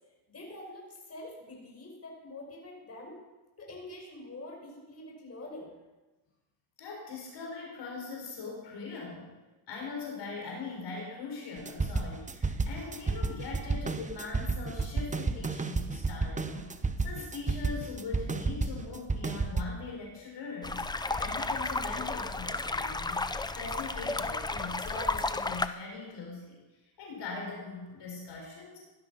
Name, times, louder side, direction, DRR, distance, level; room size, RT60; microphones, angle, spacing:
voice 1, 0.3-3.2 3.6-5.7, left 1 dB, 30° left, 0 dB, 5.8 m, -45 dB
voice 2, 6.8-9.3 9.7-23.3 23.6-26.6 27.0-28.8, left 4 dB, 60° left, -1 dB, 5.3 m, -41 dB
sound 1, 11.6-19.6, right 4 dB, 15° right, 0.9 m, -31 dB
sound 2, 20.6-25.7, left 3 dB, 10° left, 0.6 m, -33 dB
17.5 x 11.5 x 5.7 m, 1.1 s
cardioid pair, 100°, 47 cm